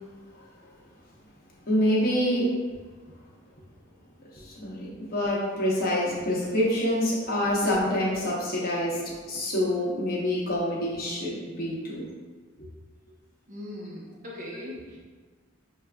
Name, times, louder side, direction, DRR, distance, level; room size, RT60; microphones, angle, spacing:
voice 1, 1.7-2.5 4.3-12.1 12.6-12.7, left 1 dB, 45° left, -6 dB, 0.9 m, -26 dB
voice 2, 13.5-15.0, left 1 dB, 40° right, -4 dB, 0.8 m, -39 dB
6.1 x 2.4 x 2.3 m, 1.4 s
head